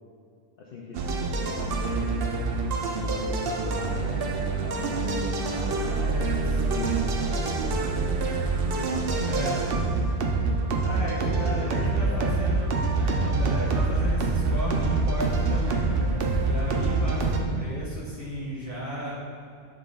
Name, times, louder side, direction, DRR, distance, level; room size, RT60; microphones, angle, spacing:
voice 1, 0.6-1.0 1.4-2.4 2.9-4.2 4.6-8.3 8.7-9.9 11.2-12.4 16.8-16.9, left 3 dB, 55° left, -2 dB, 0.7 m, -39 dB
sound 1, 0.9-17.4, right 3 dB, 60° right, 0.6 m, -26 dB
voice 2, 6.5-7.0 9.3-9.6 10.8-19.2, right 1 dB, 15° right, -8 dB, 1.3 m, -34 dB
7.4 x 3.7 x 3.7 m, 2.4 s
omnidirectional pair, 1.4 m